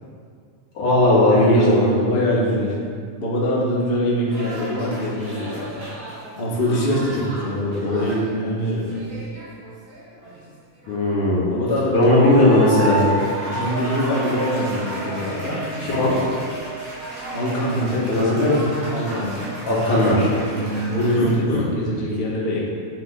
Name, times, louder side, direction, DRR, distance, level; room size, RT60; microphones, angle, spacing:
voice 1, 0.8-1.9 10.9-11.5 11.9-13.0 15.8-16.1 18.1-18.6 19.7-20.3 21.2-21.6, left 1 dB, 80° left, -7 dB, 4.1 m, -17 dB
voice 2, 1.3-2.8 3.2-5.6 6.4-8.9 11.5-12.7 13.4-15.6 16.0-16.1 17.3-18.3 18.9-19.5 20.5-22.7, equal, 25° left, -4 dB, 1.3 m, -23 dB
sound 1, 4.3-8.3 8.7-10.4 10.8-11.6 11.9-21.3, right 2 dB, 40° right, 3.8 m, -32 dB
10.0 x 8.7 x 4.0 m, 2.1 s
omnidirectional pair, 3.5 m